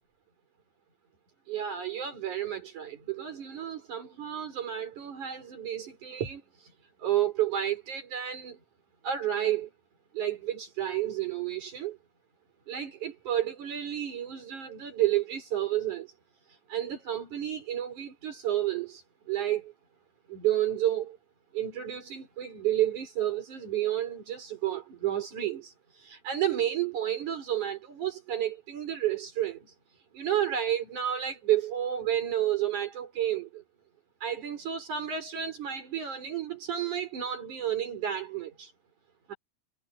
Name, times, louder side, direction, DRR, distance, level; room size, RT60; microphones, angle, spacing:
voice 1, 1.5-6.4 7.0-8.6 9.0-9.7 10.1-12.0 12.7-16.1 16.7-19.7 20.3-21.2 21.5-25.7 26.0-29.7 30.1-33.6 34.2-38.7 39.3-39.4, right 11 dB, 65° right, 5.6 m, -31 dB
omnidirectional pair, 3.8 m